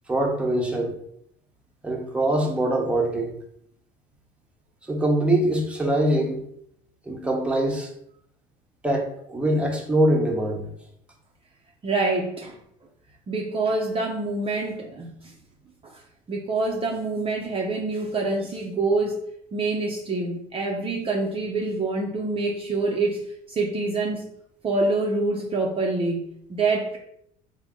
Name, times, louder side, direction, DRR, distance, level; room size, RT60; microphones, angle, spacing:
voice 1, 0.1-1.0 1.8-3.4 4.9-6.4 7.0-7.9 8.8-10.7, right 1 dB, 5° right, 0 dB, 0.9 m, -23 dB
voice 2, 11.8-12.6 13.3-15.3 15.8-16.0 16.3-19.2 19.5-24.3 24.6-27.0, right 3 dB, 30° right, 0 dB, 0.6 m, -26 dB
3.4 x 2.2 x 3.7 m, 0.71 s
hypercardioid pair, 70°, 19 cm